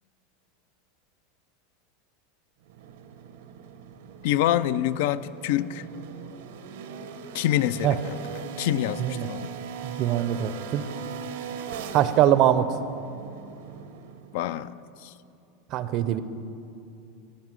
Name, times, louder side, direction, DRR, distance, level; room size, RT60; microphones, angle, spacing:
sound 1, 2.6-14.5, right 7 dB, 75° right, 0.8 m, -40 dB
voice 1, 4.2-5.9 7.3-9.5 14.3-15.1, left 12 dB, 65° left, 16 dB, 0.3 m, -26 dB
voice 2, 9.8-10.8 11.9-12.7 15.7-16.2, right 11 dB, 40° right, 13 dB, 0.5 m, -22 dB
14.5 x 5.3 x 7.5 m, 2.6 s
supercardioid pair, 155°, 0 cm